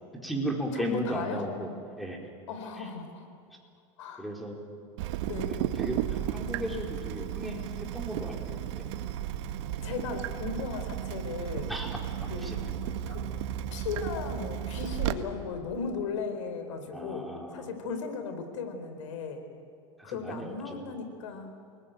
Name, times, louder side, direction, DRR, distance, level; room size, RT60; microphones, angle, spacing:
voice 1, 0.2-1.7 2.0-2.3 2.8-2.9 4.2-4.6 5.5-8.8 11.7-12.7 16.9-17.7 20.0-20.8, right 1 dB, ahead, -1 dB, 4.4 m, -36 dB
voice 2, 0.8-1.4 2.5-3.3 4.0-4.3 5.2-5.6 9.8-11.7 12.3-12.5 13.1-13.2 13.7-17.2 17.5-19.4 20.0-21.5, left 5 dB, 85° left, 7 dB, 4.4 m, -36 dB
Water tap faucet / Drip, 5.0-15.1, right 11 dB, 70° right, 1.5 m, -34 dB
28.5 x 20.0 x 9.3 m, 2.5 s
supercardioid pair, 130°, 16 cm